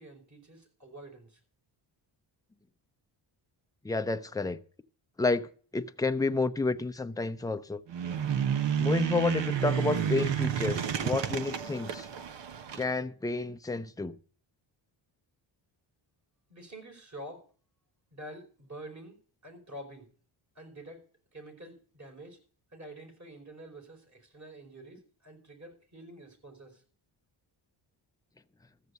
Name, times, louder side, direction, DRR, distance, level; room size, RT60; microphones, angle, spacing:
voice 1, 0.0-1.4 16.5-17.4 18.1-19.2 19.4-20.1 20.5-21.0 21.3-22.4 22.7-26.8, right 1 dB, 35° right, 4.9 m, -47 dB
voice 2, 3.8-4.6 5.2-7.8 8.8-12.1 12.7-14.2, left 3 dB, 10° left, 0.6 m, -30 dB
sound 1, 7.9-12.9, right 8 dB, 60° right, 1.0 m, -30 dB
14.0 x 6.6 x 8.2 m
cardioid pair, 105°, 48 cm